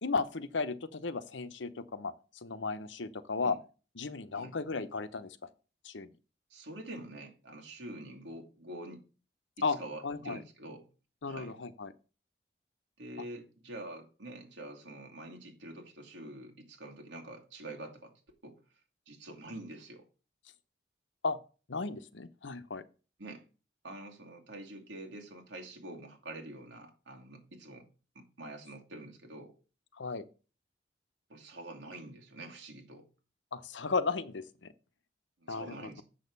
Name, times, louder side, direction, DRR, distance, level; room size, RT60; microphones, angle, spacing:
voice 1, 0.0-3.6 4.0-5.4 5.8-6.1 9.6-9.8 10.0-10.4 11.2-11.9 21.2-21.4 21.7-22.8 30.0-30.2 33.5-34.7 35.5-36.0, left 4 dB, 85° left, 0.9 m, -35 dB
voice 2, 6.5-9.0 9.6-10.9 11.2-11.6 13.0-18.1 18.4-18.6 19.1-20.1 23.2-23.4 23.8-27.9 28.1-29.5 31.3-33.1 35.4-36.0, right 1 dB, 85° right, 2.6 m, -46 dB
7.7 x 6.5 x 5.4 m
head